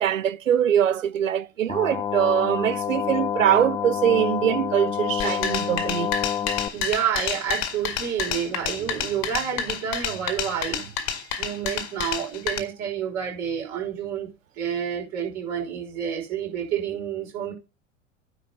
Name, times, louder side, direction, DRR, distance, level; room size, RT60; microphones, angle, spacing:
voice 1, 0.0-6.2, right 10 dB, 85° right, 0.6 m, -23 dB
sound 1, 1.7-6.7, left 9 dB, 15° left, 0.8 m, -28 dB
sound 2, 5.2-12.6, left 7 dB, 40° left, 1.9 m, -29 dB
voice 2, 6.7-17.5, right 8 dB, 45° right, 5.8 m, -29 dB
9.8 x 4.8 x 6.8 m
figure-of-eight pair, 85°, 38 cm